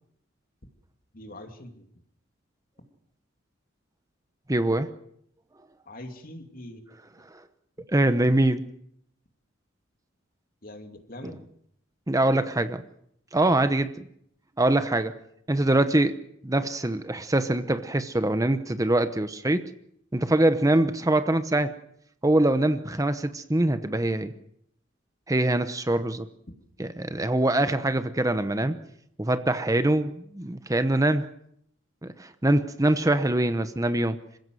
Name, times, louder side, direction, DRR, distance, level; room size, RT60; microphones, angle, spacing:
voice 1, 1.1-1.9 5.9-6.8 10.6-11.4 13.6-13.8, left 1 dB, 45° left, 6 dB, 2.8 m, -43 dB
voice 2, 4.5-4.9 7.3-7.4 7.9-8.6 11.2-11.3 12.1-12.8 13.3-13.9 14.6-15.1 15.5-16.2 16.4-19.6 20.1-21.7 22.2-24.3 25.3-26.3 26.8-28.7 29.2-31.2 32.0-34.2, right 1 dB, 15° right, 10 dB, 0.9 m, -23 dB
26.5 x 16.0 x 7.8 m, 0.72 s
head